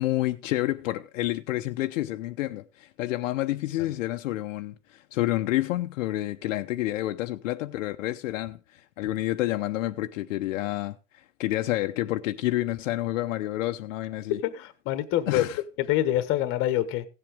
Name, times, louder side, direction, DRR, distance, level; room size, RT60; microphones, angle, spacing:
voice 1, 0.0-14.4 15.3-15.6, left 16 dB, 60° left, 0.8 m, -29 dB
voice 2, 14.4-15.4 15.8-17.0, left 13 dB, 30° left, 1.3 m, -26 dB
16.5 x 7.7 x 3.5 m
supercardioid pair, 155°, 43 cm